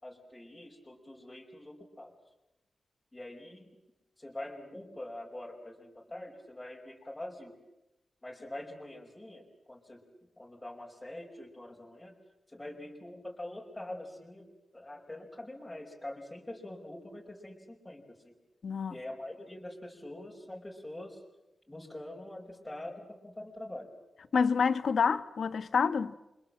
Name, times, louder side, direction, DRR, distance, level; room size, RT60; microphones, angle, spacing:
voice 1, 0.0-2.1 3.1-3.7 4.2-7.6 8.2-10.0 10.4-12.2 12.5-18.3 18.9-21.2 21.7-23.9, left 1 dB, 15° left, 5.1 m, -44 dB
voice 2, 18.6-18.9 24.3-26.2, left 5 dB, 70° left, 1.5 m, -27 dB
30.0 x 25.5 x 7.6 m
wide cardioid pair, 115°, 0 cm